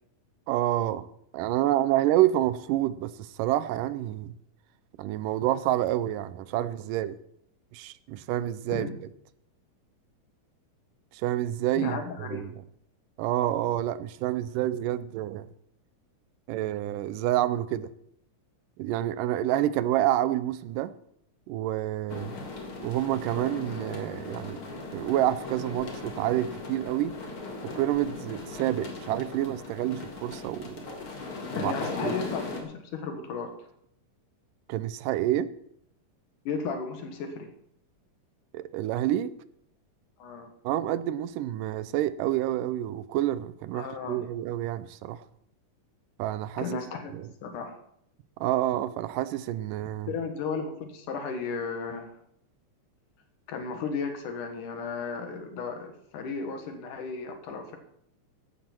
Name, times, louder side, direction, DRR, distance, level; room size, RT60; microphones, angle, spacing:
voice 1, 0.5-1.1 1.3-4.3 5.0-7.2 7.7-8.9 11.1-12.0 12.3-12.5 13.2-15.5 16.5-17.9 18.8-20.9 21.5-22.3 22.8-24.6 24.9-27.1 27.7-30.8 31.5-31.7 32.0-32.1 34.7-35.5 38.5-39.3 40.6-45.2 46.2-46.7 47.1-47.3 48.4-50.1, right 13 dB, 90° right, 2.3 m, -28 dB
voice 2, 11.8-12.5 31.5-33.5 36.5-37.5 40.2-40.5 43.7-44.3 46.6-47.1 47.4-47.8 50.1-52.1 53.5-57.8, left 5 dB, 75° left, 3.0 m, -34 dB
sound 1, 22.1-32.6, left 3 dB, 45° left, 2.7 m, -38 dB
15.0 x 12.0 x 4.5 m
omnidirectional pair, 3.7 m